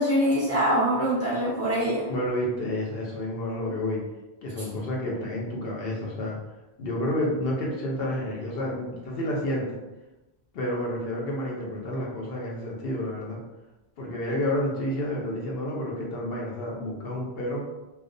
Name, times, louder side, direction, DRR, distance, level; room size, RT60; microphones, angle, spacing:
voice 1, 0.0-2.1, equal, 15° right, -8 dB, 0.8 m, -24 dB
voice 2, 2.1-4.0 4.4-6.4 6.8-9.8 10.5-13.4 14.0-17.6, left 1 dB, 65° left, -2 dB, 0.8 m, -30 dB
2.3 x 2.1 x 2.5 m, 1.0 s
omnidirectional pair, 1.1 m